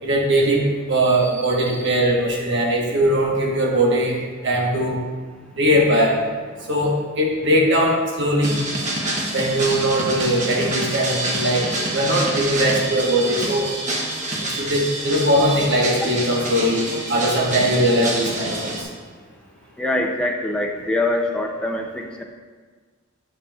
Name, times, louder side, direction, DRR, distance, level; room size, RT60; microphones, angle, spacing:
voice 1, 0.0-4.2 4.4-5.0 5.6-6.2 6.7-8.6 9.3-11.7 11.9-13.7 14.6-16.8 17.1-18.8, right 1 dB, 60° right, -1 dB, 1.3 m, -20 dB
sound 1, 8.4-18.8, right 1 dB, 35° right, 1.0 m, -27 dB
voice 2, 19.8-22.2, left 1 dB, 5° left, 1 dB, 0.6 m, -24 dB
8.3 x 7.4 x 2.4 m, 1.5 s
head